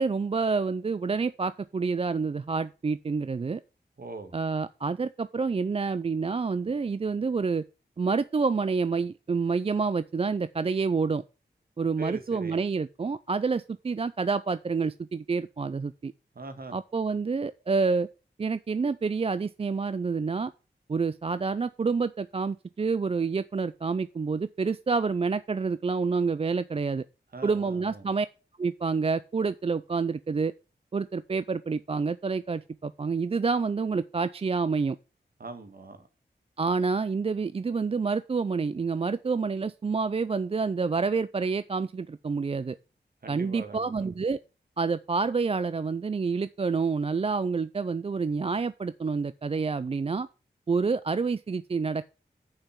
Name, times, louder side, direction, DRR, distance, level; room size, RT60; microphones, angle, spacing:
voice 1, 0.0-3.6 4.3-7.6 8.0-11.2 11.8-16.1 16.7-18.1 18.4-20.5 20.9-27.0 27.4-28.3 28.6-30.5 30.9-35.0 36.6-42.8 43.3-44.4 44.8-50.3 50.7-52.1, right 4 dB, 35° right, 0.4 m, -28 dB
voice 2, 4.0-4.3 12.0-12.6 16.3-16.7 27.3-28.1 35.4-36.1 43.2-44.0, right 3 dB, 55° right, 1.7 m, -41 dB
7.0 x 5.6 x 7.3 m
cardioid pair, 55°, 18 cm